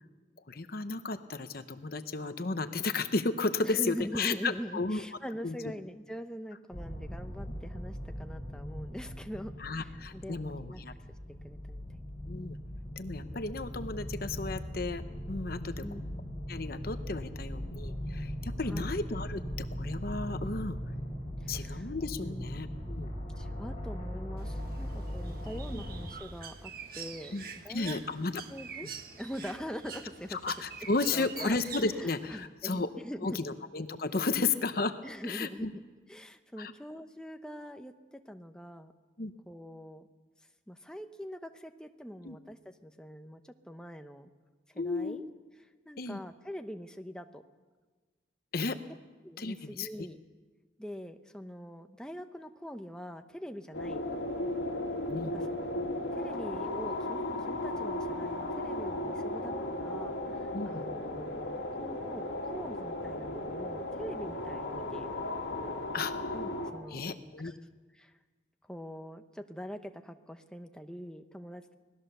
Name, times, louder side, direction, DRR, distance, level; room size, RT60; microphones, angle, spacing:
voice 1, 0.5-5.0 5.4-5.6 9.6-10.9 12.3-12.6 13.0-15.0 15.3-15.8 16.5-20.8 21.5-23.1 25.7-25.8 27.3-28.4 28.8-28.9 30.3-32.9 33.2-35.0 35.2-35.7 36.6-36.7 39.2-39.3 42.2-42.4 44.8-45.2 46.0-46.2 48.5-48.8 49.4-50.1 55.1-55.3 60.5-60.8 65.9-66.1 66.9-67.5, left 3 dB, 50° left, 10 dB, 0.8 m, -33 dB
voice 2, 3.6-10.8 11.4-11.8 15.8-16.0 18.7-18.9 21.4-21.9 22.2-22.5 23.4-27.4 27.6-28.9 29.2-30.4 31.1-31.6 31.9-33.4 35.0-35.8 36.1-38.9 39.5-40.1 40.7-44.3 44.7-45.2 45.8-47.4 49.2-50.2 50.8-54.3 55.3-65.1 66.3-67.2 67.4-67.6 67.9-68.1 68.7-71.7, equal, 5° left, 6 dB, 0.9 m, -43 dB
sound 1, 6.7-26.1, equal, 35° left, 5.8 m, -39 dB
Bird, 24.4-32.5, right 6 dB, 50° right, 1.5 m, -46 dB
sound 2, 53.7-66.7, left 1 dB, 70° left, 2.7 m, -35 dB
25.5 x 18.5 x 6.8 m, 1.4 s
head